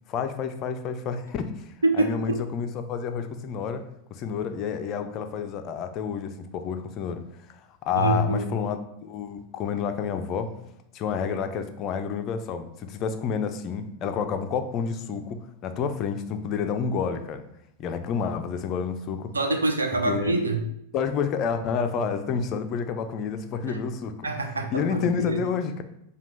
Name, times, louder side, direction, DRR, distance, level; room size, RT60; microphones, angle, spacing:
voice 1, 0.1-1.7 1.9-3.8 4.1-7.6 7.9-10.5 10.9-17.4 17.8-19.3 20.1-20.3 20.9-24.1 24.7-25.8, left 6 dB, 35° left, 8 dB, 0.4 m, -29 dB
voice 2, 1.8-2.4 7.9-8.5 19.3-20.6 23.7-23.8 24.2-25.4, right 2 dB, 75° right, 4 dB, 0.5 m, -25 dB
4.9 x 2.3 x 3.2 m, 0.79 s
figure-of-eight pair, 90°, 0 cm